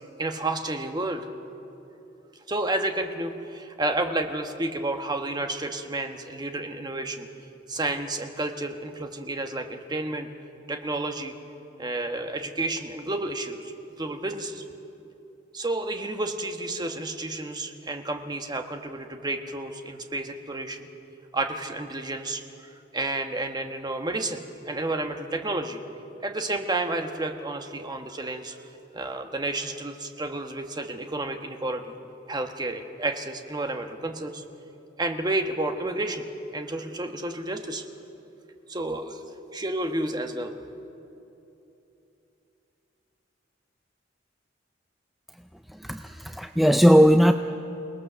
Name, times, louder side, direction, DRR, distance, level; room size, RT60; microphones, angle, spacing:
voice 1, 0.2-1.3 2.5-7.3 7.7-10.3 10.7-11.3 11.8-13.7 14.0-14.6 15.5-20.9 21.3-25.8 26.2-28.6 28.9-31.9 32.3-34.4 35.0-36.3 36.5-37.8 38.7-39.2 39.5-40.5, right 2 dB, 20° right, 5 dB, 1.2 m, -31 dB
voice 2, 45.7-47.3, equal, ahead, 7 dB, 0.4 m, -18 dB
28.5 x 18.5 x 6.8 m, 3.0 s
head